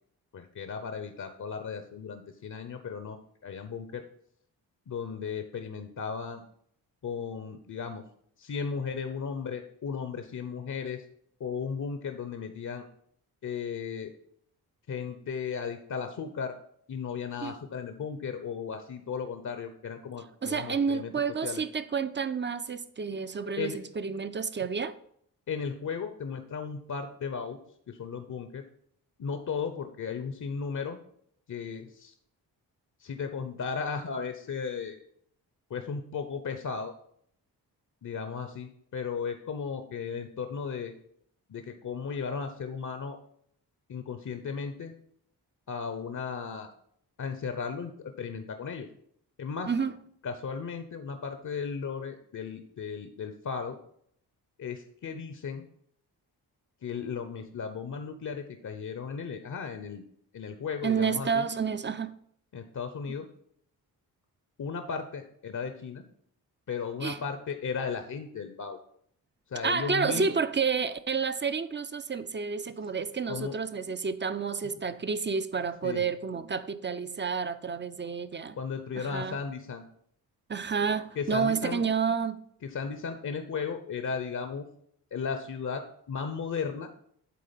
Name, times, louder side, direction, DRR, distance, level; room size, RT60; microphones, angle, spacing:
voice 1, 0.3-4.0 4.9-6.4 7.0-8.0 8.4-11.0 11.4-12.9 13.4-14.1 14.9-16.5 16.9-21.1 21.4-21.6 23.6-23.8 25.5-27.6 27.9-28.6 29.2-31.0 31.5-32.1 33.0-35.0 35.7-36.9 38.0-40.9 41.5-43.2 43.9-44.9 45.7-46.7 47.2-47.9 48.2-48.9 49.4-49.7 50.2-53.8 54.6-55.7 56.8-60.0 60.3-61.5 62.5-63.3 64.6-66.0 66.7-68.8 69.5-70.3 73.3-73.6 75.8-76.0 78.5-79.8 81.2-81.8 82.6-84.7 85.1-86.9, left 6 dB, 45° left, 0.8 m, -35 dB
voice 2, 20.4-24.9 49.7-49.9 60.8-62.1 67.0-67.2 69.6-78.6 79.0-79.4 80.5-82.4, right 5 dB, 25° right, 0.6 m, -30 dB
8.5 x 3.8 x 5.7 m
supercardioid pair, 50°, 41 cm